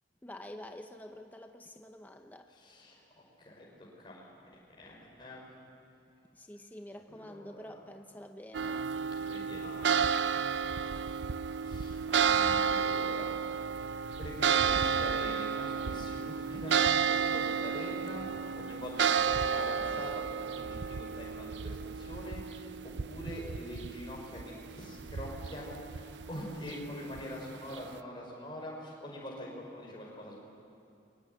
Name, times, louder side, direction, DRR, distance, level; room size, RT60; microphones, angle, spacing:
voice 1, 0.2-2.5 6.3-8.9, left 1 dB, 10° left, 5 dB, 0.8 m, -48 dB
voice 2, 2.5-3.0 3.4-4.3 4.8-5.6 6.9-7.8 9.2-10.1 11.5-13.4 14.2-30.4, left 1 dB, 25° left, -3 dB, 6.0 m, -44 dB
sound 1, 8.5-27.8, right 6 dB, 75° right, 0.6 m, -32 dB
24.5 x 23.0 x 9.7 m, 2.6 s
head